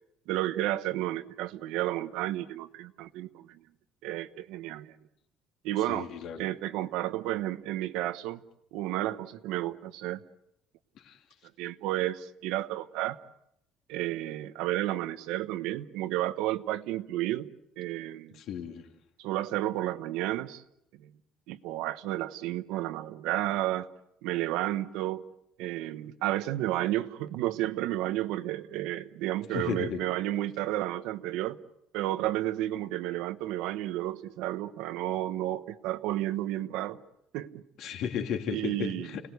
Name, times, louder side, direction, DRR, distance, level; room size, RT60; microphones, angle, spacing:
voice 1, 0.3-3.6 4.0-4.9 5.6-6.1 6.4-8.4 8.7-10.2 11.6-13.2 13.9-17.5 17.8-18.4 19.2-20.6 21.0-21.1 21.5-23.9 24.2-25.2 25.6-31.6 31.9-37.0 37.3-37.6 38.5-39.1, right 14 dB, 85° right, 11 dB, 1.1 m, -32 dB
voice 2, 5.9-6.4 11.0-11.2 18.3-18.9 29.5-30.0 37.8-39.2, left 8 dB, 55° left, 4 dB, 2.9 m, -34 dB
29.5 x 19.0 x 8.1 m, 0.81 s
cardioid pair, 175°, 0 cm